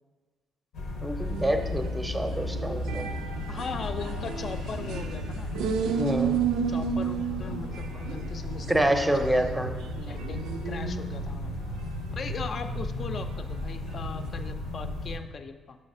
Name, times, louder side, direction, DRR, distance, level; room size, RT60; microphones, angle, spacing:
sound 1, 0.7-15.2, left 1 dB, 85° left, 0.7 m, -35 dB
voice 1, 1.0-3.1 6.0-6.4 8.7-9.8, right 1 dB, 5° right, 5 dB, 0.6 m, -27 dB
sound 2, 1.3-9.2 9.8-11.2 11.7-11.8 12.5-12.6, right 7 dB, 85° right, 0.4 m, -32 dB
voice 2, 3.5-5.5 6.7-9.1 9.4-11.5 12.1-15.8, left 5 dB, 50° left, 8 dB, 0.5 m, -39 dB
6.3 x 3.2 x 5.5 m, 1.4 s
cardioid pair, 90°, 0 cm